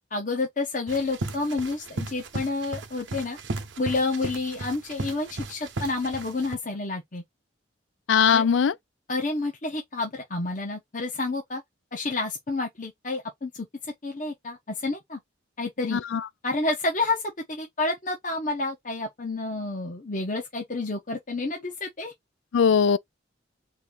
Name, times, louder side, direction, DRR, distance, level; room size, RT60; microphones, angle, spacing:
voice 1, 0.1-3.4 3.8-7.2 8.3-8.4 9.1-11.6 11.9-13.7 14.0-15.2 15.6-16.0 16.4-17.2 17.5-22.1, left 3 dB, 45° left, 1.0 m, -29 dB
sound 1, 0.9-6.5, right 2 dB, 75° right, 0.9 m, -35 dB
voice 2, 8.1-8.7 15.9-16.2 22.5-23.0, left 6 dB, 80° left, 0.4 m, -20 dB
4.4 x 2.7 x 3.6 m
head